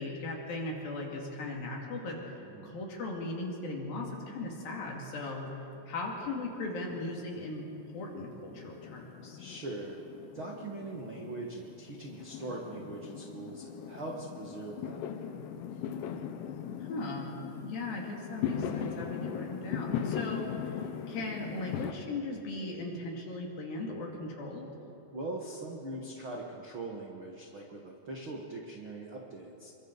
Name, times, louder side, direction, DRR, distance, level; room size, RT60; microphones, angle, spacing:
voice 1, 0.0-2.4 2.6-7.6 7.9-9.4 16.8-17.3 17.6-20.6 21.1-24.7, left 2 dB, 60° left, -1 dB, 4.1 m, -38 dB
voice 2, 2.4-2.7 9.4-10.0 10.3-15.2 25.1-29.7, right 2 dB, 60° right, -1 dB, 1.3 m, -41 dB
Fireworks, 5.5-6.4 6.7-21.9, left 8 dB, 80° left, 3.1 m, -39 dB
27.5 x 23.0 x 4.1 m, 2.8 s
omnidirectional pair, 4.9 m